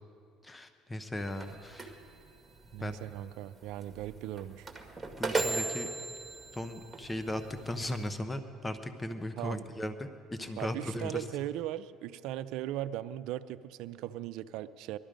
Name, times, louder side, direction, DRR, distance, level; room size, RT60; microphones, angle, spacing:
voice 1, 0.4-2.0 2.8-3.0 5.2-5.9 6.5-11.2, left 1 dB, 15° left, 9 dB, 1.0 m, -37 dB
sound 1, 1.2-8.2, right 3 dB, 15° right, 1.9 m, -38 dB
voice 2, 2.7-4.7 9.4-9.7 10.6-15.0, right 13 dB, 75° right, 14 dB, 0.5 m, -38 dB
20.0 x 12.5 x 5.2 m, 2.3 s
supercardioid pair, 100°, 0 cm